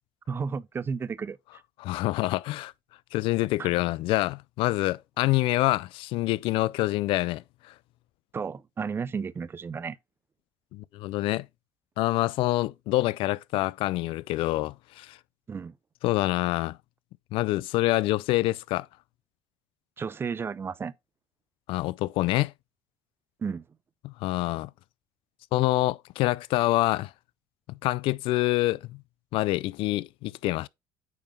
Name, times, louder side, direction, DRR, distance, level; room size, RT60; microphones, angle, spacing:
voice 1, 0.3-1.6 3.6-3.7 8.3-10.0 15.5-15.7 20.0-20.9 23.4-23.6, right 5 dB, 25° right, 0.4 m, -33 dB
voice 2, 1.8-2.7 3.1-7.7 10.7-11.5 12.0-15.2 16.0-16.8 17.3-18.9 21.7-22.5 24.0-24.7 25.5-27.1 27.8-29.0 29.3-30.7, left 18 dB, 65° left, 0.3 m, -26 dB
9.1 x 3.6 x 3.5 m
supercardioid pair, 105°, 10 cm